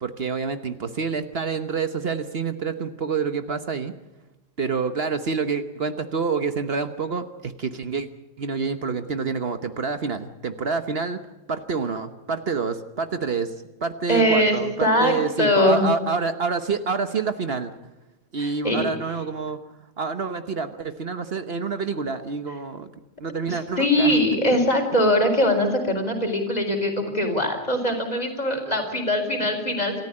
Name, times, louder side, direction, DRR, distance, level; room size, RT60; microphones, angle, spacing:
voice 1, 0.0-3.9 4.6-8.1 8.4-11.2 11.5-13.5 13.8-17.7 18.3-19.6 20.0-22.9 23.2-24.2 24.9-25.1, right 5 dB, 55° right, 9 dB, 1.3 m, -27 dB
voice 2, 14.1-15.9 18.4-18.9 23.5-29.9, left 1 dB, 35° left, 3 dB, 4.3 m, -22 dB
28.0 x 14.0 x 8.7 m, 1.1 s
omnidirectional pair, 1.2 m